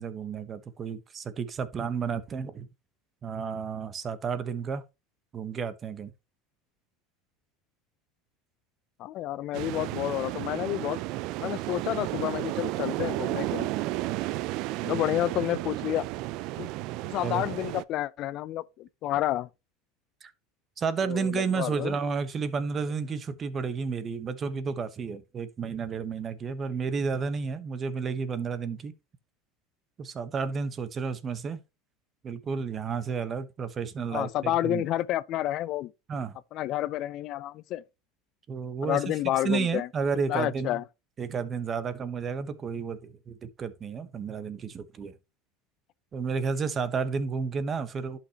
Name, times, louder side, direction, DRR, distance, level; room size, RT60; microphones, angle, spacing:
voice 1, 0.0-2.7 3.2-4.8 5.3-6.1 14.8-15.0 17.2-17.5 20.2-20.3 20.8-28.9 30.0-31.6 32.2-34.8 36.1-36.4 38.5-39.1 39.4-40.8 41.2-45.1 46.1-48.2, right 5 dB, 30° right, 1.1 m, -31 dB
voice 2, 9.0-11.0 11.4-13.7 14.8-16.1 16.6-16.7 17.0-19.5 21.0-21.9 34.1-35.9 36.5-37.8 38.8-39.9 40.3-40.8, left 14 dB, 50° left, 0.5 m, -30 dB
sound 1, 9.5-17.8, right 18 dB, 60° right, 0.4 m, -33 dB
11.0 x 6.0 x 2.9 m
supercardioid pair, 120°, 0 cm